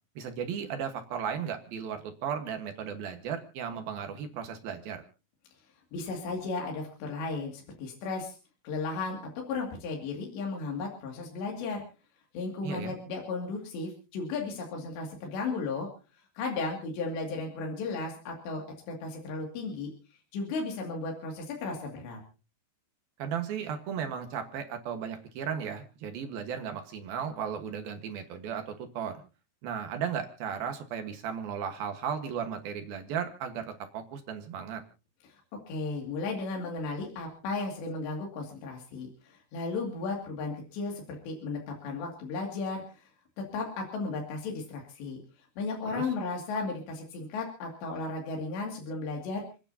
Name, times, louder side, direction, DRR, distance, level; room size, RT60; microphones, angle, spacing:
voice 1, 0.2-5.0 12.6-12.9 23.2-29.2 29.6-34.8 45.9-46.1, right 7 dB, 65° right, 6 dB, 2.9 m, -35 dB
voice 2, 5.9-8.4 8.6-9.2 9.4-11.8 12.3-15.9 16.4-19.9 20.3-22.2 35.3-35.4 35.7-43.1 43.4-45.2 45.6-49.4, left 3 dB, 75° left, 0 dB, 4.6 m, -35 dB
29.5 x 10.0 x 2.8 m, 0.34 s
omnidirectional pair, 5.1 m